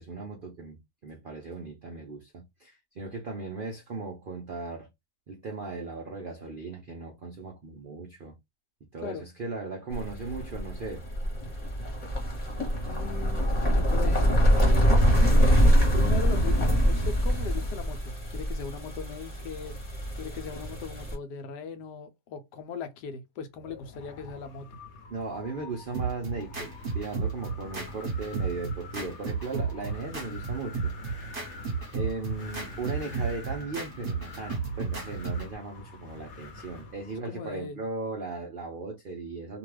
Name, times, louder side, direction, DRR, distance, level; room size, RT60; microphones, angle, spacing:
voice 1, 0.0-4.9 5.3-8.4 8.9-11.0 25.1-30.9 31.2-31.3 31.9-39.6, right 3 dB, 70° right, 0.5 m, -37 dB
sound 1, 9.9-21.1, equal, 30° left, 0.9 m, -24 dB
voice 2, 12.9-15.0 15.9-19.8 20.2-24.7 37.2-37.8, left 6 dB, 85° left, 1.2 m, -39 dB
Wind, 23.6-37.2, left 3 dB, 55° left, 0.9 m, -45 dB
sound 2, 25.9-35.5, right 5 dB, 40° right, 1.1 m, -33 dB
2.8 x 2.3 x 3.2 m
omnidirectional pair, 1.7 m